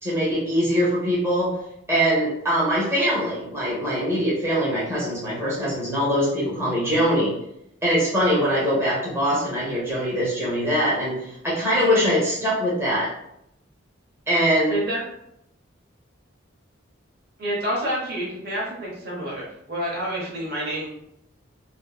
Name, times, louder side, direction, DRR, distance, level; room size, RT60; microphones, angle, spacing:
voice 1, 0.0-1.5 1.9-7.3 7.8-13.1 14.3-14.7, equal, 10° right, -8 dB, 0.7 m, -22 dB
voice 2, 14.7-15.0 17.4-20.9, equal, 50° right, -4 dB, 0.7 m, -28 dB
2.6 x 2.4 x 2.3 m, 0.77 s
head